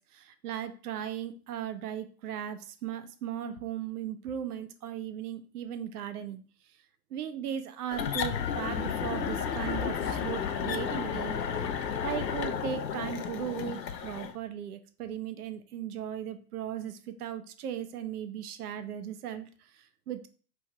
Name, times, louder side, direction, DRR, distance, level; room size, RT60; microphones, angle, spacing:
voice 1, 0.1-6.4 7.1-11.4 12.0-20.3, right 9 dB, 65° right, 10 dB, 0.6 m, -37 dB
sound 1, 7.9-14.3, left 7 dB, 80° left, 0.6 m, -32 dB
3.2 x 2.6 x 4.4 m, 0.40 s
figure-of-eight pair, 100°, 49 cm